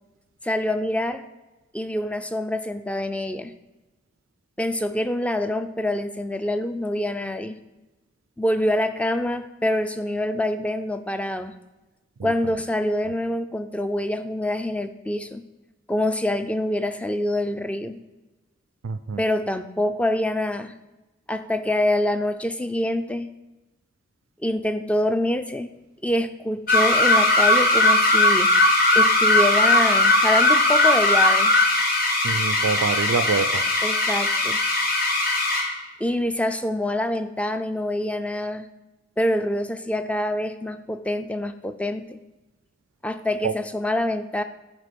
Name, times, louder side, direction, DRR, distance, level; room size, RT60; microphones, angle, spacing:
voice 1, 0.4-1.2 1.7-3.5 4.6-7.6 8.4-11.5 12.2-15.4 15.9-18.0 19.2-20.7 21.3-23.3 24.4-25.7 26.0-28.5 28.9-31.5 33.8-34.6 36.0-38.7 39.2-42.2 43.0-44.4, left 1 dB, 5° left, 9 dB, 0.4 m, -25 dB
voice 2, 18.8-19.2 32.2-33.6 43.4-43.5, right 5 dB, 80° right, 11 dB, 0.4 m, -26 dB
sound 1, 26.7-35.8, left 2 dB, 50° left, 1.3 m, -19 dB
10.5 x 4.5 x 5.1 m, 1.1 s
head